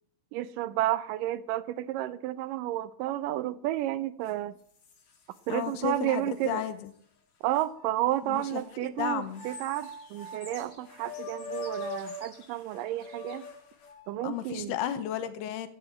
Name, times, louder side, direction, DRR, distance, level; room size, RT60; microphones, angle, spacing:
voice 1, 0.3-4.5 5.5-6.6 7.4-13.4 14.1-14.7, right 14 dB, 80° right, 2.0 m, -31 dB
sound 1, 4.3-4.4 4.8-5.8 6.4-6.5 7.6-8.7 9.3-14.2, left 2 dB, 70° left, 4.7 m, -42 dB
voice 2, 5.5-6.9 8.2-9.4 14.2-15.7, left 11 dB, 90° left, 3.1 m, -33 dB
sound 2, 9.2-10.8 11.1-13.4, left 3 dB, 25° left, 4.2 m, -51 dB
13.0 x 9.7 x 8.9 m
omnidirectional pair, 4.5 m